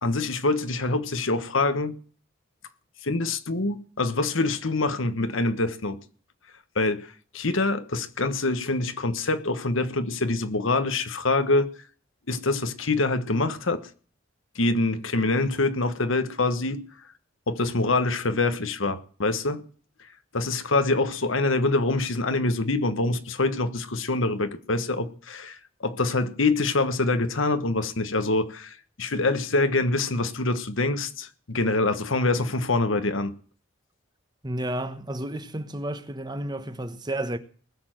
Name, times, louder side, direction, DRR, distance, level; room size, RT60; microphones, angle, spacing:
voice 1, 0.0-2.0 3.0-6.0 6.7-11.7 12.3-13.9 14.5-16.8 17.5-19.6 20.3-33.3, left 2 dB, 75° left, 1.3 m, -25 dB
voice 2, 34.4-37.4, right 1 dB, 20° right, 1.2 m, -31 dB
19.5 x 7.0 x 7.7 m
head